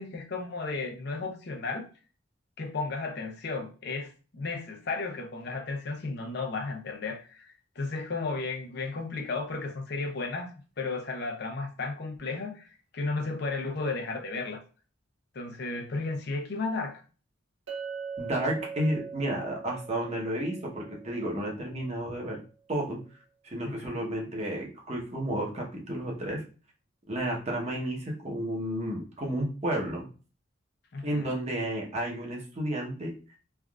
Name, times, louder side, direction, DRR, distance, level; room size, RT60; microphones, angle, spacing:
voice 1, 0.0-1.9 2.6-10.5 10.8-14.6 15.3-17.0 23.6-24.0 30.9-31.3, left 3 dB, 60° left, 0.6 m, -34 dB
Chink clink, 17.7-21.9, right 6 dB, 75° right, 0.8 m, -41 dB
voice 2, 18.2-22.4 22.7-23.0 23.4-26.4 27.1-30.0 31.0-33.1, right 1 dB, 35° right, 0.9 m, -32 dB
3.4 x 2.4 x 2.3 m
head